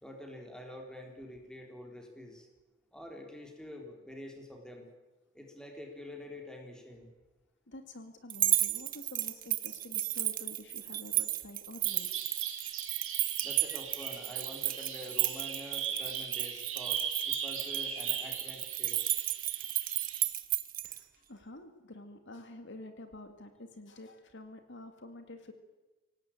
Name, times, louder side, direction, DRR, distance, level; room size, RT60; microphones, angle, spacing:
voice 1, 0.0-2.5 2.9-4.9 5.3-7.1 13.4-19.0, left 1 dB, 5° left, 2 dB, 4.0 m, -47 dB
voice 2, 7.7-12.1 20.8-25.5, left 2 dB, 60° left, 7 dB, 2.1 m, -49 dB
sound 1, 8.3-21.0, right 14 dB, 40° right, 1.3 m, -33 dB
Bird vocalization bird call bird song, 11.8-20.2, right 7 dB, 75° right, 5.7 m, -39 dB
25.0 x 18.0 x 8.9 m, 1.2 s
head